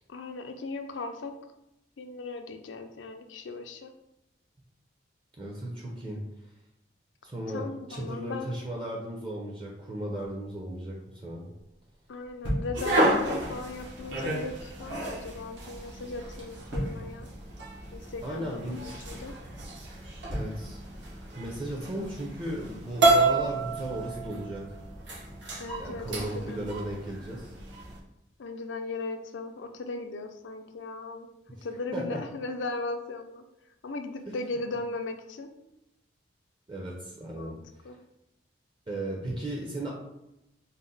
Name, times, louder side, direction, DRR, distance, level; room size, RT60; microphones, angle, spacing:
voice 1, 0.1-1.3 2.0-3.9 7.5-8.5 12.1-17.3 17.9-19.3 25.6-26.6 28.4-31.3 31.6-33.4 33.8-35.5 37.4-37.6 37.8-38.0, left 3 dB, 80° left, 6 dB, 0.4 m, -37 dB
voice 2, 5.4-6.2 7.2-11.5 18.2-18.8 20.3-20.8 21.4-24.6 25.7-27.5 31.6-31.7 31.9-32.2 34.3-34.4 36.7-37.5 38.9-39.9, right 1 dB, 25° right, -2 dB, 0.5 m, -36 dB
sound 1, 10.1-21.9, equal, 90° right, 1.5 m, -42 dB
sound 2, 12.7-28.0, right 2 dB, 70° right, 0.9 m, -31 dB
4.0 x 2.1 x 3.9 m, 0.87 s
head